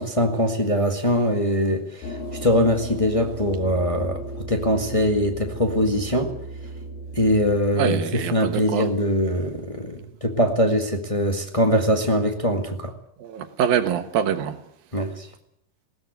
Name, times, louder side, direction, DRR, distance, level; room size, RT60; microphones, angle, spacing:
voice 1, 0.0-6.3 7.1-12.9 14.9-15.3, equal, 35° left, 0.5 m, -22 dB
sound 1, 2.0-7.6, right 1 dB, 75° left, 5.0 m, -35 dB
voice 2, 7.8-8.9 13.2-14.6, right 8 dB, 75° right, 3.1 m, -24 dB
20.5 x 18.0 x 9.3 m
omnidirectional pair, 4.3 m